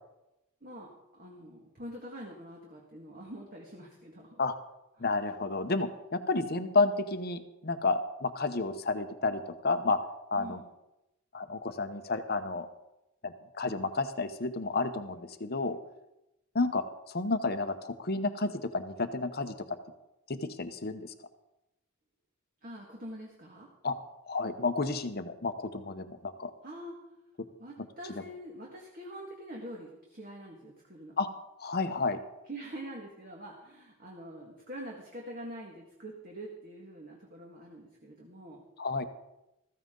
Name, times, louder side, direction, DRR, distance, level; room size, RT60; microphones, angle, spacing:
voice 1, 0.6-4.4 5.0-5.1 10.4-10.7 22.6-23.7 26.6-27.0 27.6-31.2 32.5-38.6, right 1 dB, 40° right, -1 dB, 1.8 m, -45 dB
voice 2, 5.0-10.0 10.3-10.6 11.3-12.7 13.2-15.8 16.5-19.5 20.3-21.1 23.8-23.9 24.3-26.5 31.2-31.3 31.6-32.2 38.8-39.0, left 3 dB, 45° left, 9 dB, 0.9 m, -31 dB
15.0 x 14.5 x 3.8 m, 0.93 s
head